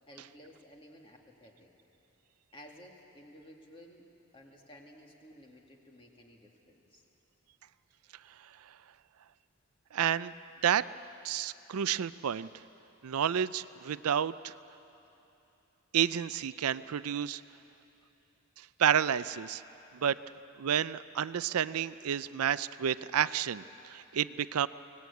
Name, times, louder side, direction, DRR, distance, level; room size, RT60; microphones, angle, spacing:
voice 1, 0.1-1.7 2.5-4.1 4.3-7.0, equal, 25° left, 1 dB, 2.2 m, -54 dB
voice 2, 9.9-10.3 10.6-10.8 11.2-12.5 13.0-14.5 15.9-17.4 18.8-19.6 19.9-20.2 20.6-24.7, right 9 dB, 80° right, 15 dB, 0.4 m, -30 dB
24.0 x 18.5 x 8.4 m, 2.9 s
head